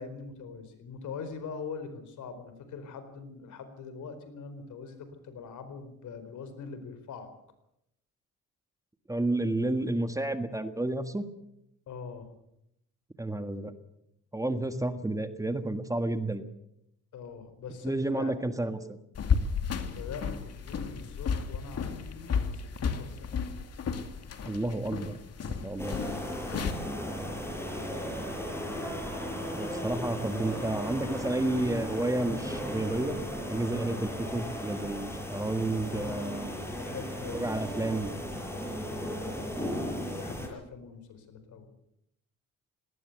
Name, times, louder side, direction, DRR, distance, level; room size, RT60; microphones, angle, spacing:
voice 1, 0.0-7.3 11.9-12.3 17.1-18.3 19.8-23.4 26.9-27.2 35.8-36.5 36.7-37.8 38.8-39.7 40.1-41.7, left 5 dB, 75° left, 10 dB, 4.4 m, -43 dB
voice 2, 9.1-11.3 13.2-13.7 14.3-16.4 17.8-19.0 24.4-25.2 25.5-26.0 27.2-27.4 29.5-33.2 33.5-36.5 37.3-38.1, right 2 dB, 10° right, 9 dB, 1.6 m, -31 dB
sound 1, 19.1-26.7, left 6 dB, 55° left, 2.5 m, -33 dB
sound 2, 25.8-40.5, equal, 10° left, 7.0 m, -36 dB
sound 3, 26.0-29.3 30.5-33.9, right 3 dB, 50° right, 5.0 m, -54 dB
19.5 x 18.0 x 8.1 m, 0.80 s
cardioid pair, 90°, 30 cm